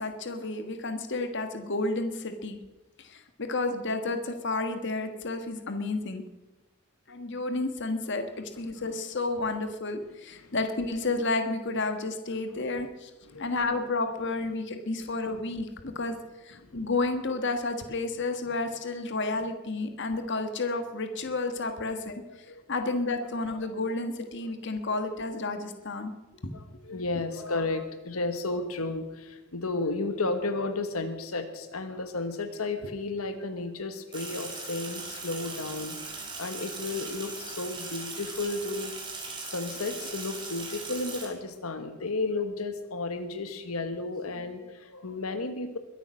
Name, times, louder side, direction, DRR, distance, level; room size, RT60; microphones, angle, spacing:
voice 1, 0.0-2.6 3.0-6.2 7.1-13.1 13.4-16.1 16.4-22.1 22.7-26.1, left 3 dB, 55° left, 7 dB, 1.5 m, -31 dB
voice 2, 13.2-13.6 16.6-16.8 21.8-22.0 22.3-23.0 23.5-23.7 24.9-25.0 26.5-38.9 39.2-45.8, left 3 dB, 85° left, 8 dB, 1.4 m, -33 dB
Sink (filling or washing), 34.1-41.3, right 3 dB, 20° right, 3.6 m, -39 dB
22.0 x 9.0 x 6.3 m, 1.1 s
head